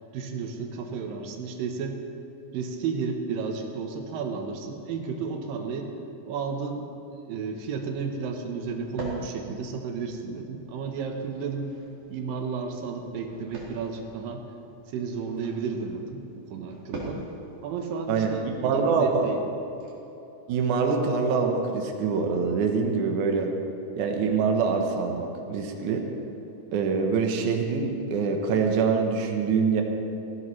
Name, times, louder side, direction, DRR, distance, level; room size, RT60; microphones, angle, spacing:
voice 1, 0.1-2.0 2.5-5.9 6.3-6.9 7.3-11.7 12.1-14.5 14.9-17.2 17.6-19.4, right 5 dB, 90° right, 3 dB, 2.8 m, -32 dB
sound 1, 7.5-19.9, right 1 dB, 50° right, 3.2 m, -44 dB
voice 2, 18.6-19.3 20.5-23.5 24.0-26.0 26.7-29.8, right 5 dB, 70° right, 3 dB, 2.4 m, -24 dB
17.5 x 15.5 x 3.2 m, 2.9 s
omnidirectional pair, 3.9 m